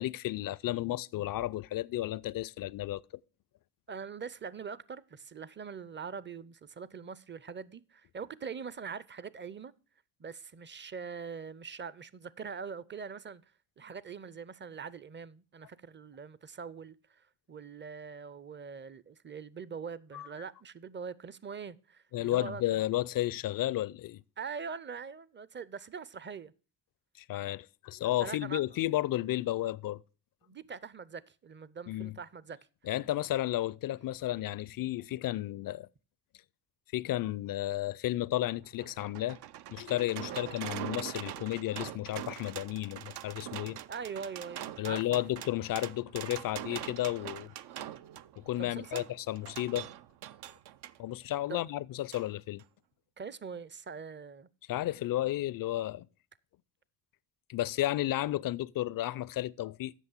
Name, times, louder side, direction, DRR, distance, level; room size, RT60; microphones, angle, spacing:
voice 1, 0.0-3.0 20.1-20.3 22.1-24.2 27.2-30.0 31.9-32.1 32.8-35.9 36.9-39.4 39.7-43.8 44.8-47.5 48.4-49.9 51.0-52.6 54.7-56.1 57.5-59.9, left 14 dB, 55° left, 0.5 m, -33 dB
voice 2, 3.9-9.7 10.2-13.4 13.8-22.6 24.4-26.5 28.2-28.6 30.4-32.6 40.3-40.6 43.9-45.2 48.6-49.1 51.5-51.6 53.2-54.5, right 6 dB, 25° right, 0.6 m, -43 dB
sound 1, 38.4-51.0 52.1-52.3 52.6-52.7, right 12 dB, 65° right, 0.6 m, -43 dB
8.2 x 6.1 x 7.2 m
supercardioid pair, 65°, 43 cm